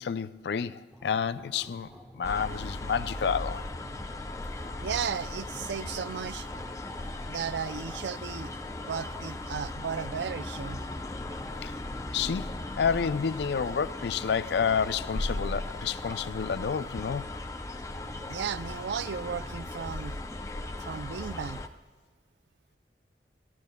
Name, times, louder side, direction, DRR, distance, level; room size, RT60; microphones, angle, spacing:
voice 1, 0.0-3.7 4.6-4.7 11.5-11.8 12.1-17.3, left 6 dB, 70° left, 0.4 m, -30 dB
sound 1, 0.9-19.8, equal, 5° right, 1.2 m, -52 dB
sound 2, 2.2-21.7, left 2 dB, 20° left, 0.5 m, -37 dB
voice 2, 4.8-6.5 7.3-8.5 8.9-10.8 11.3-11.4 18.2-20.2 20.8-21.6, right 7 dB, 80° right, 0.4 m, -35 dB
26.5 x 14.0 x 2.2 m
head